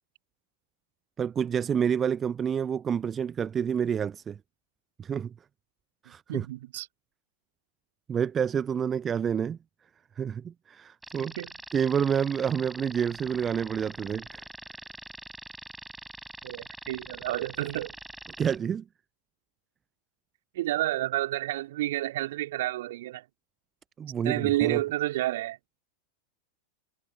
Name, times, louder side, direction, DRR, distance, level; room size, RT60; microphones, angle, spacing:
voice 1, 1.2-4.4 5.0-5.3 6.0-6.5 8.1-9.6 10.2-11.3 11.7-14.4 18.4-18.8 24.0-24.8, right 8 dB, 20° right, 0.7 m, -28 dB
voice 2, 6.3-6.9 11.2-11.5 16.4-17.9 20.5-23.2 24.2-25.6, right 15 dB, 55° right, 2.9 m, -30 dB
sound 1, 11.0-18.6, right 2 dB, 5° right, 7.4 m, -44 dB
figure-of-eight pair, 90°, 0 cm